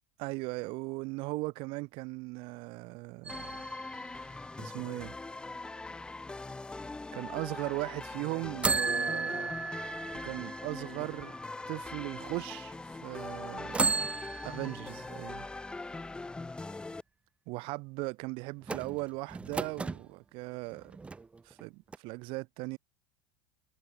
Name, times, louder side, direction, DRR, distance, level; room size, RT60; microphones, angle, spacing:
voice 1, 0.2-3.5 4.6-5.1 7.1-9.5 10.2-11.3 11.7-14.0 14.4-15.5 17.5-20.9 21.5-22.8, right 25 dB, 50° right, 5.0 m, -38 dB
sound 1, 3.2-5.1 8.6-11.7 12.3-12.4 13.7-15.5 18.6-20.0 20.7-21.6 21.9-22.0, right 4 dB, 10° right, 1.3 m, -35 dB
sound 2, 3.3-17.0, left 3 dB, 10° left, 3.6 m, -42 dB
supercardioid pair, 160°, 12 cm